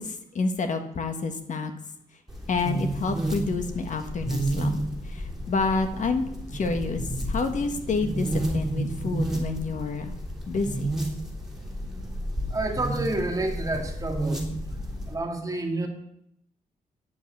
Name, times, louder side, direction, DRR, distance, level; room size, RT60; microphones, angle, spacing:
voice 1, 0.0-1.7 2.5-6.2 6.5-7.0 7.3-10.1 10.5-10.9, left 4 dB, 55° left, 7 dB, 1.5 m, -29 dB
sound 1, 2.3-15.1, right 1 dB, 5° right, 3.4 m, -31 dB
voice 2, 12.5-14.4 15.1-15.9, right 2 dB, 25° right, 3 dB, 2.3 m, -29 dB
10.0 x 7.4 x 8.4 m, 0.74 s
wide cardioid pair, 125°, 15 cm